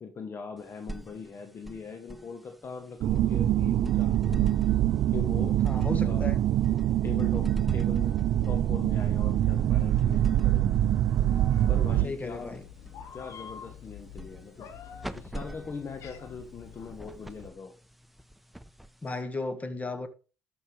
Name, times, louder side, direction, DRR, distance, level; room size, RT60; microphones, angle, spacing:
voice 1, 0.0-4.6 5.1-5.6 6.0-6.4 6.7-10.7 11.7-12.6 13.1-14.7 15.1-17.8, left 5 dB, 50° left, 1.1 m, -41 dB
sound 1, 0.6-19.4, right 1 dB, ahead, 0.7 m, -45 dB
sound 2, 3.0-12.1, right 12 dB, 75° right, 0.4 m, -24 dB
voice 2, 5.6-6.4 12.0-12.6 19.0-20.1, left 3 dB, 30° left, 1.6 m, -34 dB
Meow, 11.1-17.5, left 6 dB, 70° left, 1.4 m, -47 dB
12.5 x 5.4 x 3.3 m
supercardioid pair, 60°, 5 cm